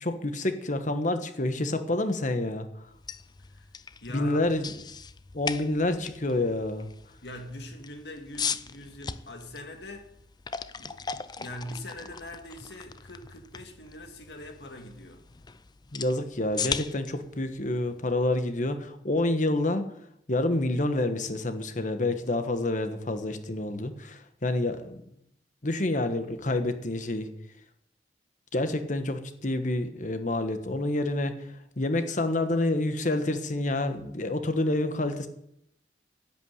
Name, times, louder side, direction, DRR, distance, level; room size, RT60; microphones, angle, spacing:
voice 1, 0.0-2.7 4.1-4.7 5.3-6.9 15.9-19.8 20.3-25.0 25.6-27.3 28.5-35.3, left 2 dB, 45° left, 1.3 m, -28 dB
sound 1, 2.9-18.8, left 6 dB, 25° left, 0.5 m, -39 dB
voice 2, 3.5-4.5 7.2-10.1 10.7-15.2, left 1 dB, 70° left, 2.2 m, -42 dB
10.5 x 8.7 x 9.4 m
head